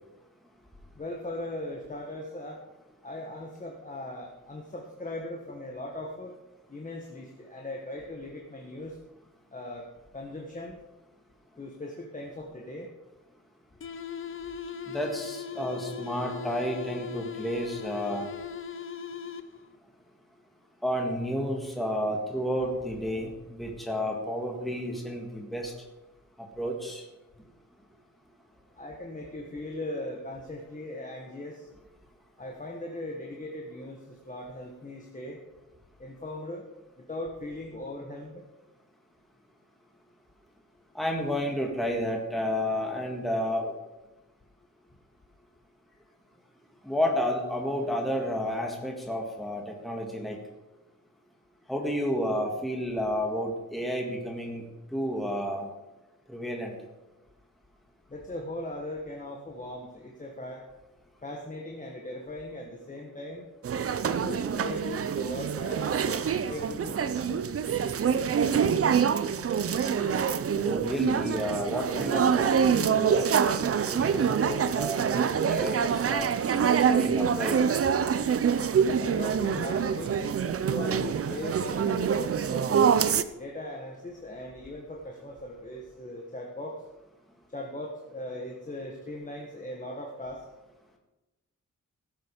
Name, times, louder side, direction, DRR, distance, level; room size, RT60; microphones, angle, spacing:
voice 1, 0.9-2.6 3.0-6.3 6.7-9.0 9.5-9.9 10.1-10.8 11.6-12.9 28.8-31.7 32.4-35.4 36.0-36.7 37.0-38.4 58.1-60.7 61.2-63.4 64.0-67.5 79.0-80.2 80.7-82.8 83.3-86.8 87.5-90.4, left 1 dB, 25° left, 0 dB, 1.4 m, -39 dB
sound 1, 13.8-19.8, left 7 dB, 40° left, 0.7 m, -39 dB
voice 2, 14.9-18.3 20.8-25.7 26.4-27.0 40.9-43.7 46.8-50.4 51.7-54.7 54.9-55.7 56.3-56.8 70.6-76.3 76.9-77.6, equal, ahead, 0 dB, 1.8 m, -31 dB
sound 2, 63.6-83.2, right 7 dB, 45° right, 0.6 m, -26 dB
16.0 x 7.9 x 5.2 m, 1.0 s
wide cardioid pair, 150°, 32 cm